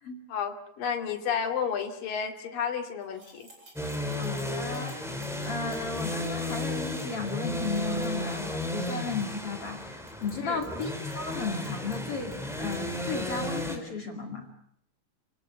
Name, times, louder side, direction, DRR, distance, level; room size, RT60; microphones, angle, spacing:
voice 1, 0.3-3.5 10.4-10.6, left 7 dB, 75° left, 4 dB, 4.2 m, -31 dB
sound 1, 3.0-12.8, right 1 dB, 35° right, 8.9 m, -56 dB
sound 2, 3.8-13.8, left 1 dB, ahead, 3.5 m, -33 dB
voice 2, 4.1-5.0 5.4-14.5, left 4 dB, 45° left, 4 dB, 3.0 m, -35 dB
30.0 x 18.0 x 8.1 m, 0.75 s
omnidirectional pair, 4.0 m